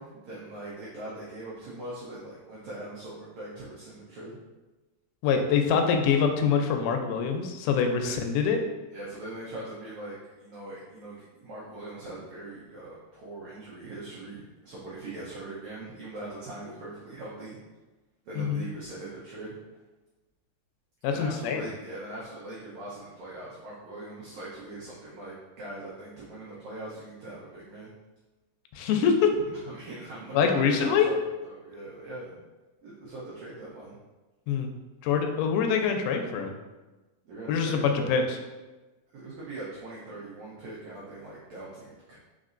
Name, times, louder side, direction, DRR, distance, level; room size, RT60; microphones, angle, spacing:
voice 1, 0.0-4.4 8.0-8.1 8.9-17.6 18.2-19.5 21.1-27.9 29.7-32.4 32.8-34.0 37.2-38.2 39.1-42.2, right 1 dB, 90° right, -7 dB, 1.6 m, -41 dB
voice 2, 5.2-8.6 18.4-18.7 21.0-21.6 28.8-29.4 30.3-31.1 34.5-34.7 35.0-36.5 37.5-38.4, left 6 dB, 90° left, 4 dB, 2.5 m, -24 dB
5.3 x 4.0 x 2.5 m, 1.2 s
omnidirectional pair, 4.4 m